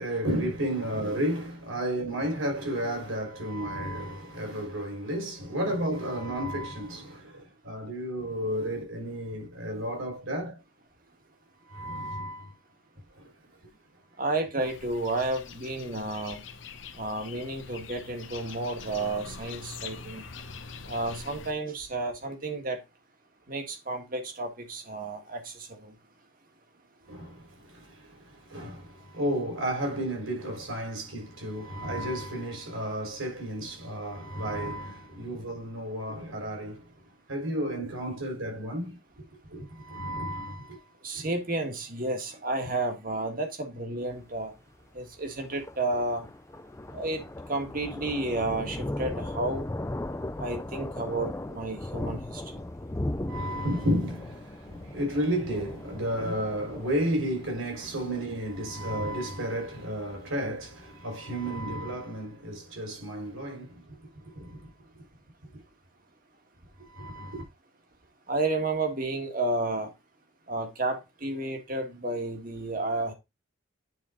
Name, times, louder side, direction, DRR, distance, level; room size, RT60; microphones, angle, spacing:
voice 1, 0.0-10.6 11.7-12.5 13.1-13.3 27.1-36.8 37.3-40.8 41.1-41.2 53.3-63.8 64.3-64.6 66.8-67.4, equal, 80° right, 4.2 m, -32 dB
voice 2, 14.2-16.4 17.0-20.2 20.9-22.8 23.5-25.9 41.0-44.5 44.9-46.3 46.9-47.2 47.5-49.6 50.4-52.4 68.3-69.9 70.5-73.1, right 2 dB, 40° right, 1.6 m, -31 dB
sound 1, 14.6-21.5, left 5 dB, 65° left, 0.9 m, -44 dB
Thunder, 44.0-60.9, left 1 dB, 15° left, 0.4 m, -38 dB
9.5 x 4.4 x 3.8 m
head